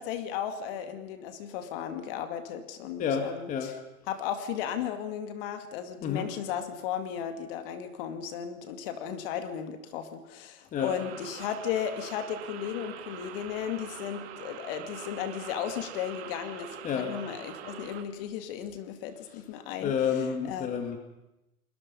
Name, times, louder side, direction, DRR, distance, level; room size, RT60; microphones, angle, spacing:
voice 1, 0.0-3.7 4.1-20.0 20.4-20.7, left 9 dB, 40° left, 9 dB, 2.3 m, -35 dB
voice 2, 3.0-3.7 6.0-6.3 10.7-10.9 16.8-17.1 19.8-21.0, left 7 dB, 20° left, 5 dB, 1.9 m, -29 dB
sound 1, 10.8-18.0, right 10 dB, 45° right, 2.5 m, -44 dB
29.5 x 20.5 x 5.5 m, 0.91 s
hypercardioid pair, 145°, 43 cm